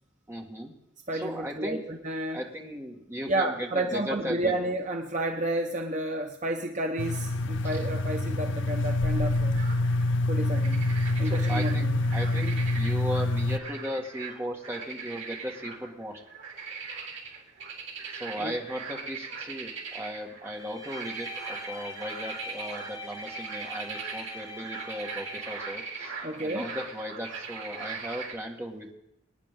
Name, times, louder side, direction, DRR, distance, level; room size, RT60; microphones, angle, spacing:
voice 1, 0.3-0.7 1.1-1.8 2.3-4.5 7.7-7.8 11.2-11.9 12.1-16.2 18.1-26.1 26.4-28.9, equal, 15° right, 0 dB, 1.9 m, -36 dB
voice 2, 1.1-2.4 3.3-9.7 10.3-12.0 18.4-18.5 26.2-26.7, right 1 dB, 40° right, 3 dB, 0.8 m, -31 dB
sound 1, 7.0-13.6, left 2 dB, 70° left, 0.6 m, -26 dB
sound 2, 9.1-10.1 10.5-11.7 12.0-28.3, right 5 dB, 70° right, 3.6 m, -40 dB
Bowed string instrument, 20.5-25.9, left 1 dB, 25° left, 5.3 m, -43 dB
24.5 x 10.0 x 3.8 m, 0.86 s
head